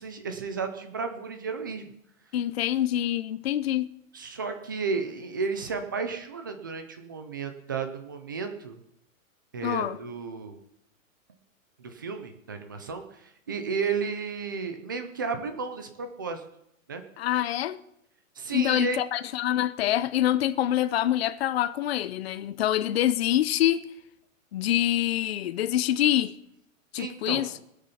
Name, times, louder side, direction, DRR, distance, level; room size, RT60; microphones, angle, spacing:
voice 1, 0.0-1.9 4.1-8.8 9.5-10.6 11.8-16.4 16.9-17.0 18.4-19.0 27.0-27.5, right 5 dB, 15° right, 0.4 m, -33 dB
voice 2, 2.3-3.9 9.6-10.0 17.2-17.8 18.5-23.9 24.5-26.3 26.9-27.5, left 12 dB, 50° left, 0.6 m, -25 dB
20.0 x 6.8 x 5.7 m
hypercardioid pair, 170°, 41 cm